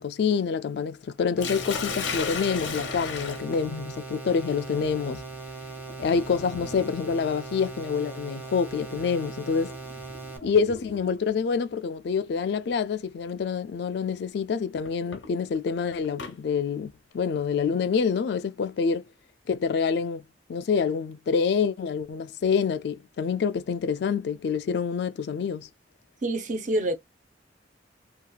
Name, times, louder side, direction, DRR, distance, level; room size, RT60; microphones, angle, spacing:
voice 1, 0.0-5.2 6.0-9.8 10.4-19.0 19.5-20.2 20.5-25.7, left 6 dB, 60° left, 0.3 m, -27 dB
Sink (filling or washing), 1.4-11.3 12.5-12.8 13.3-13.4 14.8-16.4, left 5 dB, 90° left, 0.7 m, -38 dB
sound 1, 1.4-10.4, right 4 dB, 10° right, 0.8 m, -40 dB
voice 2, 26.2-26.9, right 1 dB, 45° right, 0.6 m, -26 dB
2.8 x 2.3 x 2.2 m
head